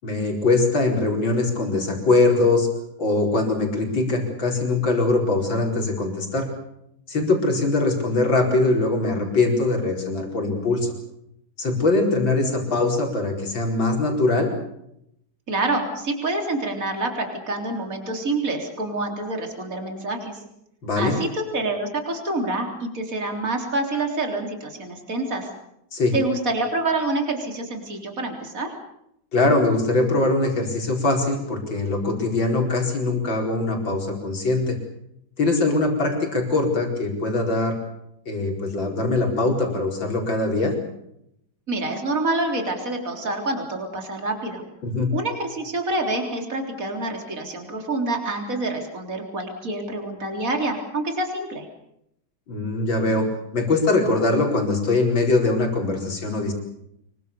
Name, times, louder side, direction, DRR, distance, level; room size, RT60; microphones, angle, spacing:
voice 1, 0.0-2.7 3.0-6.5 7.1-10.9 11.6-14.5 20.8-21.1 25.9-26.2 29.3-34.8 35.4-37.8 38.3-40.8 44.8-45.1 52.5-53.3 53.5-56.5, left 2 dB, 70° left, 2 dB, 5.4 m, -22 dB
voice 2, 15.5-20.4 20.9-25.5 26.1-28.7 41.7-44.6 45.1-51.7, right 2 dB, 40° right, 3 dB, 4.1 m, -27 dB
26.0 x 23.5 x 7.0 m, 0.78 s
omnidirectional pair, 2.2 m